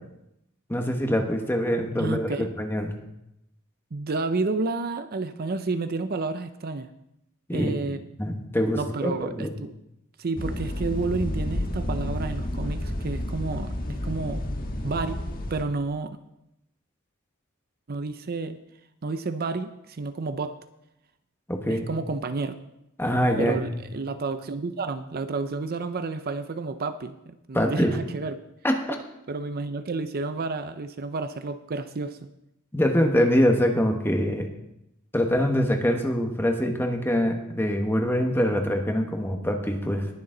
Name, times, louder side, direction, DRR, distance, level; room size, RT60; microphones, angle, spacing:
voice 1, 0.7-2.9 7.5-7.7 8.2-9.5 21.5-21.9 23.0-23.8 27.5-27.9 28.6-29.0 32.7-34.5 35.1-40.1, equal, 10° left, 3 dB, 1.3 m, -24 dB
voice 2, 2.0-2.5 3.9-6.9 7.5-8.0 8.8-9.7 10.2-13.7 14.0-14.4 14.8-15.2 15.5-16.2 17.9-18.6 19.0-20.6 21.7-22.6 23.4-28.4 29.3-32.3, right 3 dB, 45° right, 10 dB, 0.6 m, -30 dB
sound 1, 10.4-15.6, left 1 dB, 45° left, 1.3 m, -30 dB
20.0 x 6.9 x 3.9 m, 0.84 s
head